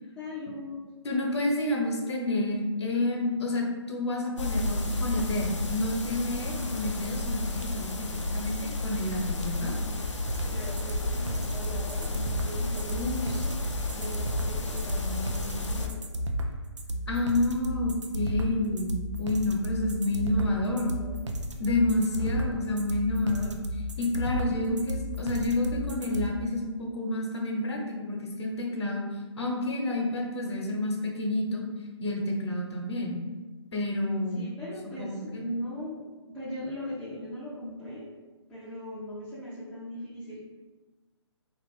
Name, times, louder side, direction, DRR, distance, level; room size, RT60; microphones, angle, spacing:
voice 1, 0.2-0.9 10.5-13.5 13.9-16.0 20.2-21.5 22.2-22.8 34.3-38.1 38.5-40.4, left 1 dB, 5° left, -12 dB, 0.4 m, -39 dB
voice 2, 1.0-9.7 12.9-13.4 17.1-20.9 21.6-23.6 24.0-29.0 29.4-31.6 32.0-33.2 33.7-34.5 35.0-35.4, left 2 dB, 65° left, 0 dB, 0.8 m, -29 dB
sound 1, 4.4-15.9, left 2 dB, 90° left, 0.5 m, -32 dB
sound 2, 10.3-26.3, equal, 80° right, 0.4 m, -33 dB
3.0 x 2.5 x 3.2 m, 1.3 s
figure-of-eight pair, 140°, 15 cm